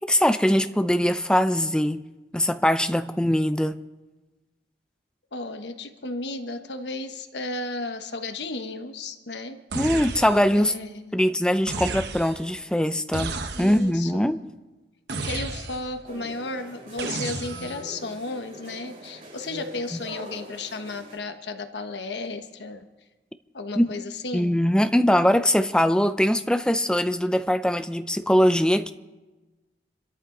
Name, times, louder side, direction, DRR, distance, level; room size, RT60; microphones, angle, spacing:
voice 1, 0.0-2.0 2.3-3.8 9.7-10.7 11.1-14.4 19.9-20.0 23.8-23.9 24.3-28.9, equal, 5° left, 0.5 m, -22 dB
voice 2, 5.3-9.6 10.5-11.2 13.6-14.3 15.2-22.8 23.5-24.6, left 2 dB, 85° left, 1.2 m, -34 dB
sound 1, 9.7-10.6 11.7-12.5 13.1-14.0 15.1-16.0 17.0-17.9, right 3 dB, 80° right, 1.2 m, -33 dB
sound 2, 16.0-21.2, equal, 50° right, 6.5 m, -43 dB
27.0 x 13.5 x 3.9 m
head